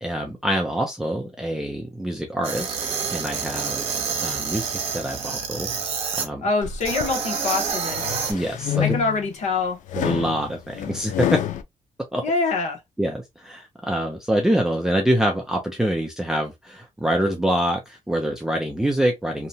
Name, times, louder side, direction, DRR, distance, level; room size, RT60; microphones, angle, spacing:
voice 1, 0.0-2.8 3.1-5.7 6.2-6.4 8.3-8.8 9.9-11.4 12.1-12.2 13.0-19.5, right 1 dB, 5° right, 0.4 m, -25 dB
sound 1, 2.4-6.3 6.8-8.3, right 6 dB, 50° right, 0.8 m, -28 dB
voice 2, 6.4-8.0 8.8-9.8 12.2-12.8, left 3 dB, 65° left, 0.9 m, -25 dB
sound 2, 6.6-7.2 7.7-9.3 9.9-11.6, left 11 dB, 90° left, 0.4 m, -28 dB
2.8 x 2.1 x 2.7 m
wide cardioid pair, 155°, 13 cm